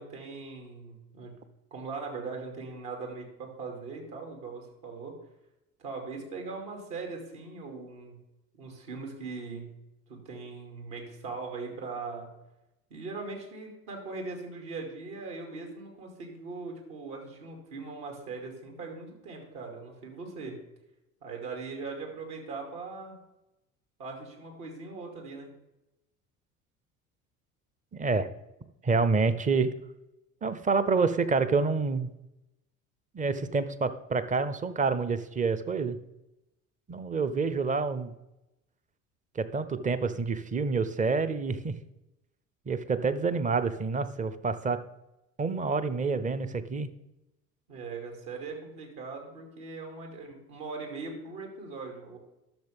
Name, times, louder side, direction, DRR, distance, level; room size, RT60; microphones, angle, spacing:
voice 1, 0.0-1.4 1.7-5.1 5.8-8.2 8.5-9.7 10.1-12.3 12.9-20.6 21.2-23.2 24.0-25.5 47.7-52.2, right 4 dB, 65° right, 2 dB, 2.6 m, -40 dB
voice 2, 27.9-28.3 28.8-29.7 30.4-32.1 33.1-36.0 36.9-38.1 39.4-41.8 42.7-44.8 45.4-46.9, right 4 dB, 20° right, 13 dB, 0.6 m, -28 dB
12.0 x 6.6 x 3.5 m, 0.93 s
hypercardioid pair, 65°, 43 cm